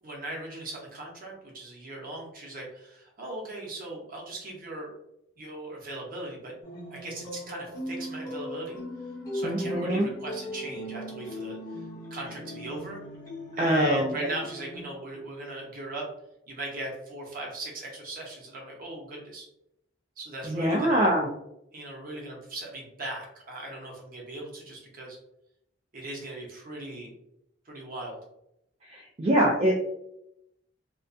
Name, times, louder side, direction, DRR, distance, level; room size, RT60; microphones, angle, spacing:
voice 1, 0.0-4.9 5.4-6.5 6.9-8.8 9.3-11.6 12.1-13.0 13.6-16.1 16.5-19.5 20.2-21.1 21.7-25.2 25.9-27.1 27.7-28.2, right 2 dB, 50° right, -1 dB, 0.7 m, -39 dB
sound 1, 6.6-14.8, left 1 dB, 20° left, 0.7 m, -38 dB
voice 2, 9.4-10.1 13.6-14.3 20.4-21.4 28.8-29.7, right 1 dB, 35° right, -2 dB, 0.3 m, -24 dB
2.3 x 2.2 x 2.5 m, 0.81 s
head